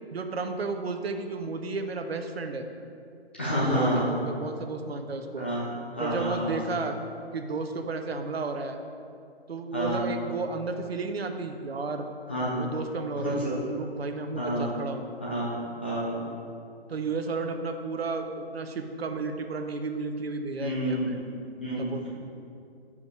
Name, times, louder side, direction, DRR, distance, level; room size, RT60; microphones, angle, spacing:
voice 1, 0.1-2.7 3.7-5.5 6.0-7.0 7.3-8.8 9.5-12.1 12.5-13.4 13.7-15.1 16.9-21.2 21.8-22.1, right 3 dB, 70° right, 6 dB, 0.7 m, -33 dB
voice 2, 3.4-4.2 5.4-5.7 6.0-6.5 9.7-10.1 12.3-12.6 13.2-13.5 14.4-14.7 15.2-16.2 20.6-21.0 21.6-22.1, equal, 10° left, -8 dB, 0.4 m, -29 dB
5.1 x 4.8 x 5.5 m, 2.5 s
figure-of-eight pair, 145°, 32 cm